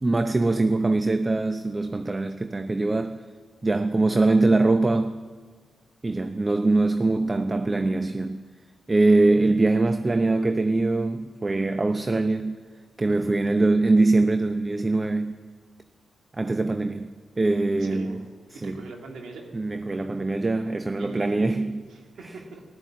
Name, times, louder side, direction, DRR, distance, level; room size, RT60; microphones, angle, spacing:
voice 1, 0.0-3.2 3.6-5.2 6.0-8.4 8.9-12.6 13.0-15.4 16.3-18.2 18.5-18.8 19.5-21.9, right 2 dB, 35° right, 0.7 m, -23 dB
voice 2, 17.8-18.3 18.5-19.4 20.9-22.6, right 3 dB, 75° right, 2.3 m, -41 dB
14.5 x 12.5 x 7.4 m
supercardioid pair, 40°, 0 cm